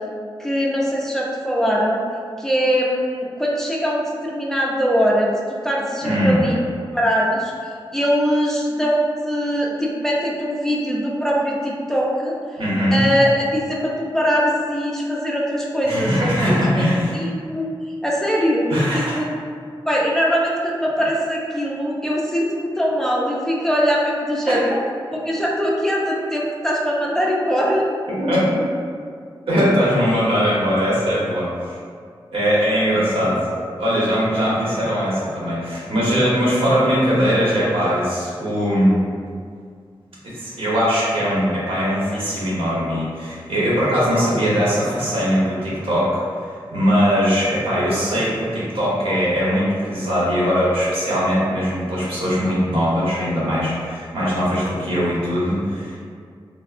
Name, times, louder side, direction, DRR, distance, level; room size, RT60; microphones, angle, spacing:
voice 1, 0.4-2.0 2.4-6.6 6.9-7.5 7.9-12.3 12.9-16.9 17.1-17.7 18.0-19.3 19.9-24.8 25.2-27.9, equal, 5° left, -4 dB, 0.3 m, -21 dB
voice 2, 6.0-6.4 12.6-13.0 15.8-17.1 18.7-19.2 28.2-28.4 29.5-31.8 32.3-33.4 33.8-39.0 40.2-46.4 46.7-56.0, equal, 85° right, -8 dB, 0.9 m, -20 dB
3.4 x 2.1 x 2.4 m, 2.1 s
wide cardioid pair, 140°, 9 cm